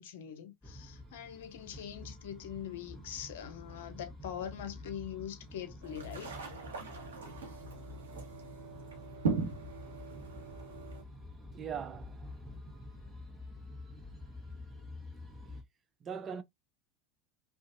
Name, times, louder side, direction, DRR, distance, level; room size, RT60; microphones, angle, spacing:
voice 1, 0.0-6.5, left 9 dB, 75° left, 0.6 m, -43 dB
sound 1, 0.6-15.6, left 2 dB, 5° left, 1.2 m, -49 dB
sound 2, 5.8-11.0, right 4 dB, 80° right, 1.0 m, -39 dB
voice 2, 11.5-12.4 16.0-16.4, right 7 dB, 35° right, 0.4 m, -40 dB
2.6 x 2.4 x 2.5 m
hypercardioid pair, 85°, 0 cm